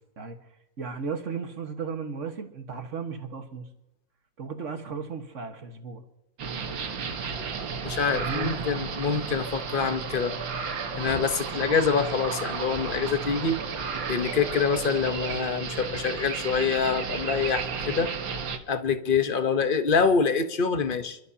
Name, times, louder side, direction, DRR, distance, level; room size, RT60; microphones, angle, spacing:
voice 1, 0.8-3.6 4.4-6.0 8.1-8.5, right 5 dB, 40° right, 5 dB, 1.6 m, -35 dB
sound 1, 6.4-18.6, right 5 dB, 75° right, 2.0 m, -33 dB
voice 2, 7.8-10.3 11.0-13.6 14.1-18.1 18.7-21.2, left 5 dB, 45° left, 9 dB, 0.7 m, -25 dB
28.0 x 12.5 x 2.8 m, 0.89 s
omnidirectional pair, 2.1 m